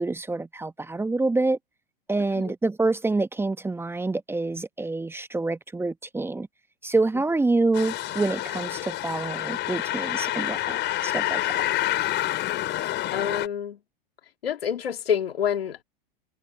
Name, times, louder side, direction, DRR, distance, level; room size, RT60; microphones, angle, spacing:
voice 1, 0.0-1.6 2.1-6.5 6.8-11.4, right 3 dB, 10° right, 1.0 m, -26 dB
sound 1, 7.7-13.5, left 14 dB, 40° left, 4.6 m, -28 dB
voice 2, 13.1-13.8 14.4-15.8, left 8 dB, 85° left, 1.9 m, -27 dB
hypercardioid pair, 105°, 29 cm